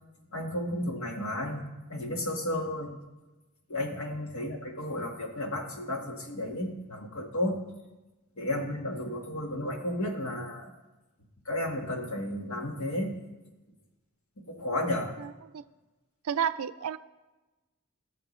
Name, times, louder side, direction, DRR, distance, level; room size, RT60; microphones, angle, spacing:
voice 1, 0.3-2.9 3.7-7.6 8.4-10.7 11.5-13.1 14.5-15.1, left 1 dB, 75° left, 2 dB, 1.5 m, -33 dB
voice 2, 15.2-15.6 16.2-17.0, right 8 dB, 75° right, 14 dB, 0.4 m, -32 dB
17.0 x 6.6 x 3.1 m, 1.1 s
head